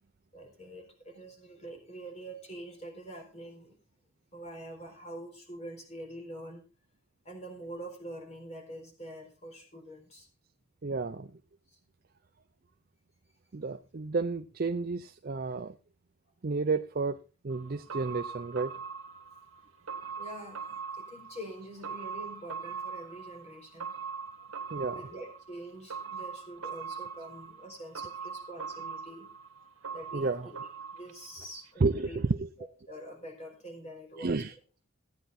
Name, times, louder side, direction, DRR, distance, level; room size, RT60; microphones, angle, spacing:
voice 1, 0.3-3.8 4.3-6.6 7.2-10.3 11.7-11.8 20.2-20.6 20.9-24.0 24.8-29.3 29.9-30.6 30.9-32.2 32.9-34.4, right 1 dB, 30° left, 3 dB, 4.1 m, -45 dB
voice 2, 10.8-11.3 13.5-15.7 16.4-18.7 24.7-25.1 28.0-28.1 30.1-30.5 31.4-32.5 34.2-34.6, right 3 dB, 40° right, 8 dB, 0.5 m, -31 dB
sound 1, 17.5-31.7 32.0-32.1, right 6 dB, 80° right, 1.5 m, -42 dB
15.5 x 9.1 x 4.1 m, 0.34 s
head